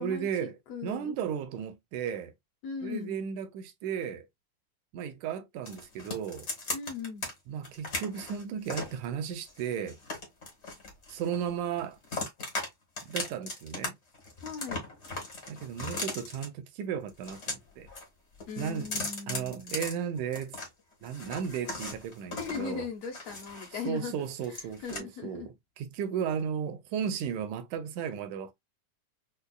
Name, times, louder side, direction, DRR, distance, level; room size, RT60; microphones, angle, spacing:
voice 1, 0.0-2.3 2.8-4.3 4.9-6.5 7.5-10.0 11.1-12.0 13.1-14.0 15.5-17.9 18.6-20.6 21.0-22.9 23.9-28.5, right 8 dB, 85° right, 2.0 m, -35 dB
voice 2, 0.7-1.2 2.6-3.2 6.7-7.3 14.4-14.8 18.5-19.8 22.3-24.1 24.5-25.5, left 6 dB, 65° left, 1.8 m, -38 dB
sound 1, 5.7-7.3 7.6-9.0 9.5-11.5 11.8-12.7 13.0-13.9 14.1-16.5 17.1-18.1 18.3-20.7 21.0-23.9 24.2-25.0, left 3 dB, 85° left, 0.6 m, -38 dB
5.3 x 2.3 x 2.3 m
omnidirectional pair, 3.5 m